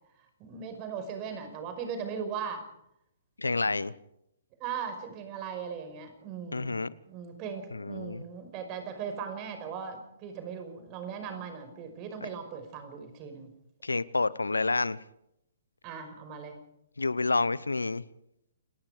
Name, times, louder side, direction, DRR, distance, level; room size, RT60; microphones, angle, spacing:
voice 1, 0.4-2.6 4.6-6.8 7.1-13.5 15.8-16.6, right 7 dB, 30° right, 5.4 m, -38 dB
voice 2, 3.4-3.9 6.5-6.9 7.7-8.2 12.2-12.3 13.8-15.0 17.0-18.0, left 3 dB, 85° left, 0.9 m, -29 dB
29.0 x 19.0 x 5.1 m
figure-of-eight pair, 130°, 0 cm